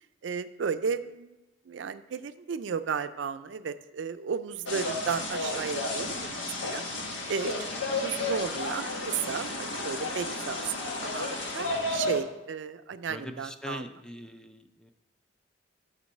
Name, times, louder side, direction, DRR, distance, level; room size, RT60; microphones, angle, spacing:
voice 1, 0.2-1.4 1.7-6.8 7.3-7.5 8.0-13.9, right 6 dB, 75° right, 12 dB, 0.4 m, -34 dB
sound 1, 4.7-12.2, left 2 dB, 80° left, 1.4 m, -32 dB
voice 2, 13.1-14.9, left 1 dB, 5° left, 7 dB, 0.4 m, -42 dB
7.1 x 5.2 x 6.4 m, 1.0 s
head